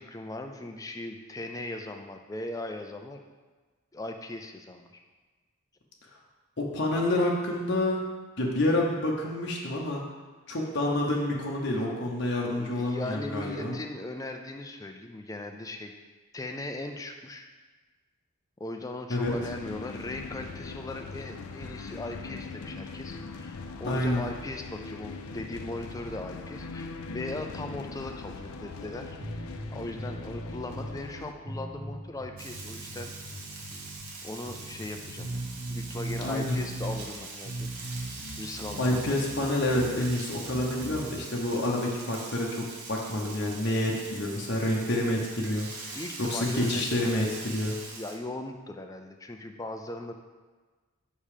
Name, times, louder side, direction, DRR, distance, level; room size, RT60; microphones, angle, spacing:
voice 1, 0.0-3.2 3.9-4.9 12.5-16.0 16.3-17.5 18.6-33.1 34.2-38.1 38.4-39.0 45.9-47.5 47.8-50.1, left 2 dB, 15° left, 4 dB, 0.4 m, -39 dB
voice 2, 6.6-8.1 8.4-10.0 10.5-13.8 19.1-19.3 23.9-24.2 36.2-36.6 38.8-45.9 46.2-47.8, left 1 dB, 50° left, -2 dB, 0.9 m, -28 dB
sound 1, 19.2-31.3, left 4 dB, 85° left, 0.5 m, -41 dB
sound 2, 29.2-31.0 31.4-34.0 34.4-37.0 37.4-40.0 40.4-41.1, right 1 dB, 45° right, 1.8 m, -38 dB
Frying (food), 32.4-48.2, right 3 dB, 85° right, 0.9 m, -43 dB
5.5 x 5.3 x 5.0 m, 1.3 s
head